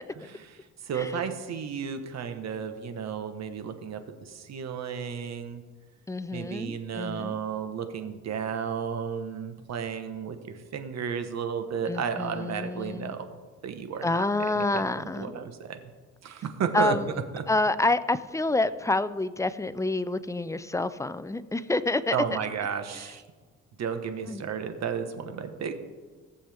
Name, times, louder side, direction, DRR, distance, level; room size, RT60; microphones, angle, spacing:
voice 1, 0.2-5.6 6.3-13.3 13.6-14.3 14.5-15.8 16.2-17.0 17.3-17.4 22.1-23.2 23.8-25.7, right 7 dB, 60° right, 8 dB, 1.2 m, -33 dB
voice 2, 6.1-7.4 11.9-13.1 14.0-15.3 16.7-17.1 17.5-22.2 24.3-24.4, left 2 dB, 10° left, 13 dB, 0.5 m, -28 dB
17.5 x 7.1 x 3.5 m, 1.4 s
cardioid pair, 90°, 30 cm